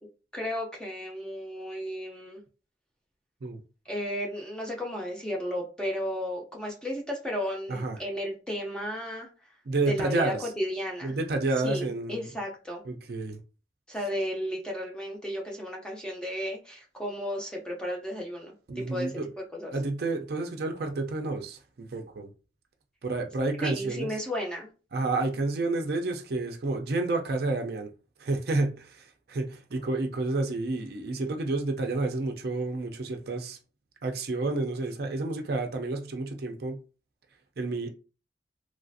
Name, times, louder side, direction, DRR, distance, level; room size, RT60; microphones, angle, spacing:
voice 1, 0.3-2.4 3.9-9.3 9.9-11.1 11.6-12.8 13.9-19.2 19.5-19.7 23.6-24.7, equal, 5° left, 0.5 m, -34 dB
voice 2, 9.7-10.4 11.0-12.3 12.9-13.4 18.7-19.3 19.7-22.3 23.0-24.1 24.9-27.9 28.2-33.6 34.0-36.8 37.6-37.9, right 2 dB, 55° right, 0.4 m, -30 dB
3.2 x 2.4 x 2.6 m
head